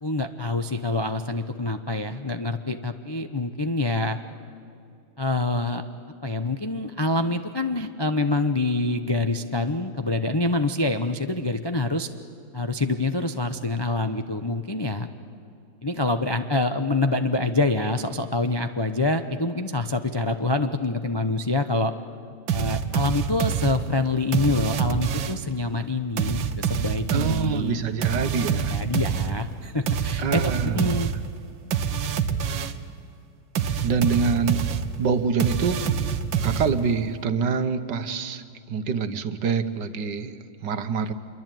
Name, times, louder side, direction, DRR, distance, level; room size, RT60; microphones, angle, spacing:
voice 1, 0.0-4.2 5.2-5.8 6.2-12.1 12.5-15.1 15.8-21.9 22.5-27.8 28.5-31.1, left 2 dB, 40° left, 7 dB, 0.3 m, -26 dB
sound 1, 22.5-25.5 26.2-32.9 33.5-37.1, right 7 dB, 85° right, 1.8 m, -27 dB
voice 2, 27.1-28.7 30.2-31.0 33.8-34.6 35.0-35.8 36.4-41.1, right 5 dB, 65° right, 10 dB, 1.7 m, -26 dB
27.0 x 23.0 x 9.2 m, 2.5 s
omnidirectional pair, 2.1 m